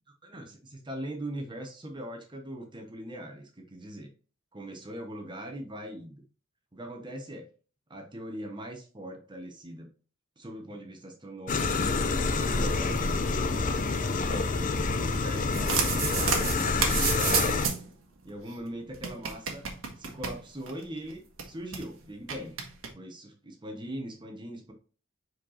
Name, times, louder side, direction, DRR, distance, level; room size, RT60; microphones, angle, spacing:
voice 1, 0.2-4.1 4.5-6.2 6.7-7.5 7.9-9.9 10.4-13.7 14.3-17.6 18.2-19.7 20.0-22.6 22.9-24.7, right 1 dB, 25° right, 4 dB, 1.1 m, -41 dB
sound 1, 11.5-17.7, left 3 dB, 40° left, 0.6 m, -27 dB
sound 2, 15.3-17.9 18.2-18.3 18.5-18.6 18.9-20.8 21.1-21.2 21.4-21.8 22.3-22.9, right 6 dB, 70° right, 1.4 m, -30 dB
5.1 x 4.6 x 4.2 m, 0.37 s
head